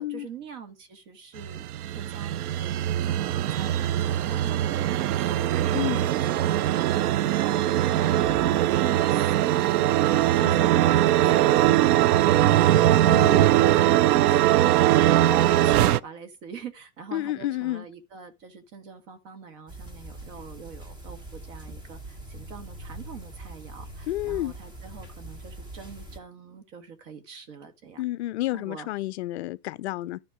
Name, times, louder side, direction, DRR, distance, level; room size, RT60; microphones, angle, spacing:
voice 1, 0.0-6.5 6.8-28.0 28.5-28.9, right 6 dB, 50° right, 1.6 m, -44 dB
sound 1, 1.4-16.0, right 13 dB, 70° right, 0.6 m, -21 dB
voice 2, 5.7-6.0 10.4-10.6 13.1-13.5 17.1-17.9 24.1-24.5 28.0-30.2, left 15 dB, 45° left, 0.4 m, -30 dB
sound 2, 7.2-7.4 7.9-8.6 9.6-10.3 10.8-11.7, left 3 dB, 10° left, 2.0 m, -45 dB
sound 3, 19.7-26.2, right 1 dB, 10° right, 0.7 m, -42 dB
11.5 x 4.4 x 4.8 m
hypercardioid pair, 140°, 48 cm